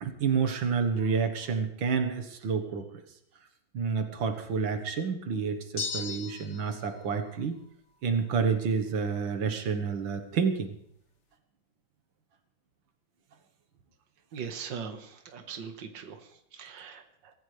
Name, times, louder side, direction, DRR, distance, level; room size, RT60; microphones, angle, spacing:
voice 1, 0.0-2.8 3.7-7.6 8.0-10.7, right 6 dB, 90° right, 7 dB, 2.1 m, -29 dB
sound 1, 5.8-6.7, left 5 dB, 45° left, 1.2 m, -35 dB
voice 2, 14.3-17.3, right 6 dB, 70° right, 6 dB, 2.0 m, -41 dB
24.0 x 15.0 x 3.3 m, 0.75 s
omnidirectional pair, 2.1 m